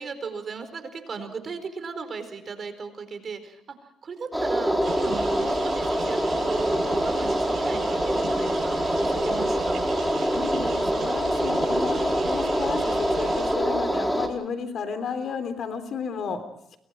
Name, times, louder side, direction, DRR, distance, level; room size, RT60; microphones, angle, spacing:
voice 1, 0.0-3.8 4.0-9.8 12.8-13.0 13.6-13.7, right 5 dB, 45° right, 9 dB, 4.6 m, -37 dB
sound 1, 4.3-14.3, equal, 5° right, 3.9 m, -25 dB
sound 2, 4.8-13.5, right 5 dB, 65° right, 7.6 m, -38 dB
voice 2, 10.3-16.4, left 6 dB, 65° left, 9 dB, 3.5 m, -33 dB
29.5 x 23.0 x 4.6 m, 0.75 s
cardioid pair, 90°, 0 cm